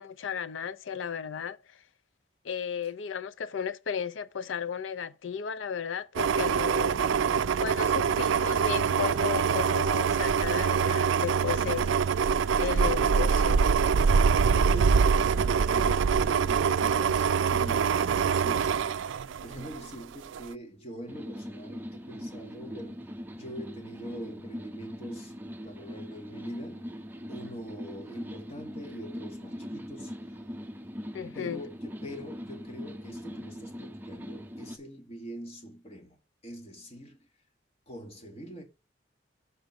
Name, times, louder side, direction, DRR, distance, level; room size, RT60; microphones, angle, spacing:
voice 1, 0.0-1.6 2.4-7.1 7.6-12.0 12.6-13.7 31.1-31.6, left 7 dB, 85° left, 0.5 m, -34 dB
sound 1, 6.2-19.9 20.3-20.4, right 6 dB, 80° right, 0.4 m, -24 dB
voice 2, 14.1-18.9 19.4-23.1 23.3-25.3 25.6-27.0 27.3-30.1 31.3-37.2 37.9-38.6, right 1 dB, 30° left, 1.8 m, -43 dB
sound 2, 21.1-34.8, equal, 10° right, 0.6 m, -41 dB
5.9 x 5.2 x 4.9 m
head